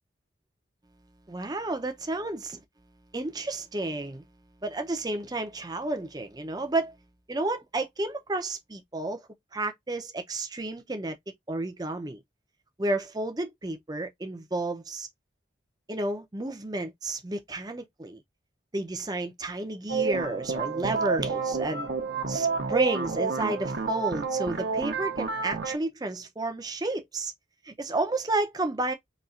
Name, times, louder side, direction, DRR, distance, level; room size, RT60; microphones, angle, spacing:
voice 1, 1.3-2.4 3.1-4.2 4.6-6.9 7.3-9.2 9.5-11.2 11.5-12.2 12.8-15.1 15.9-18.2 18.7-21.9 22.3-27.3 27.6-28.9, right 2 dB, 20° right, 0.6 m, -31 dB
sound 1, 19.9-25.8, right 5 dB, 55° right, 0.8 m, -29 dB
4.2 x 3.0 x 2.5 m
head